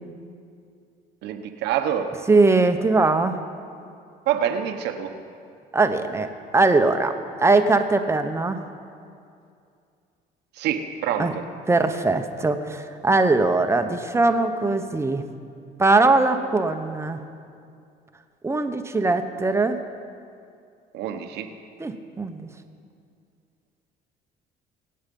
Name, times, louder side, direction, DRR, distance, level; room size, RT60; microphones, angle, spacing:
voice 1, 1.2-2.1 4.3-5.1 10.6-11.4 20.9-21.5, right 9 dB, 85° right, 6 dB, 1.1 m, -26 dB
voice 2, 2.3-3.4 5.7-6.3 6.5-7.1 7.4-8.6 11.2-11.4 11.7-15.2 15.8-17.2 18.4-19.8 21.8-22.5, right 3 dB, 15° right, 7 dB, 1.0 m, -21 dB
23.5 x 8.8 x 5.4 m, 2.4 s
cardioid pair, 110°, 17 cm